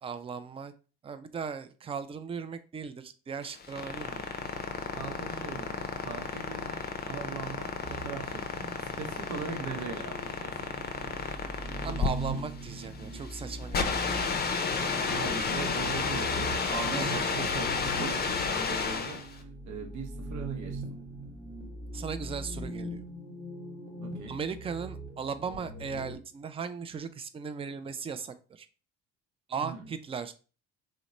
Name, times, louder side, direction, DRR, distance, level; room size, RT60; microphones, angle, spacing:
voice 1, 0.0-0.7 1.0-4.3 11.8-14.2 16.9-17.2 21.9-23.0 24.3-28.7 29.5-30.3, right 6 dB, 15° right, 11 dB, 0.3 m, -37 dB
sound 1, 3.4-19.3, left 5 dB, 30° left, 0.6 m, -32 dB
voice 2, 4.9-11.1 15.1-21.0 24.0-24.4 29.6-29.9, right 5 dB, 55° right, 4 dB, 0.8 m, -40 dB
sound 2, 7.8-26.1, right 1 dB, 10° left, 1.1 m, -41 dB
2.9 x 2.2 x 3.7 m, 0.36 s
hypercardioid pair, 65°, 35 cm